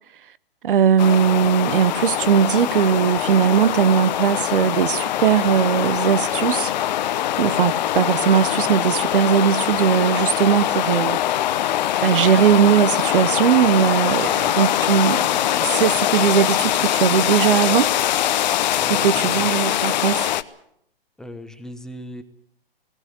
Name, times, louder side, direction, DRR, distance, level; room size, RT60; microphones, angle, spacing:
voice 1, 0.6-6.7 7.4-11.2 12.0-17.9 18.9-20.3, right 8 dB, 60° right, 0.8 m, -19 dB
sound 1, 1.0-20.4, left 12 dB, 45° left, 0.9 m, -22 dB
voice 2, 18.8-19.5 21.2-22.2, equal, ahead, 1.0 m, -38 dB
20.0 x 18.0 x 8.2 m
hypercardioid pair, 140°, 30 cm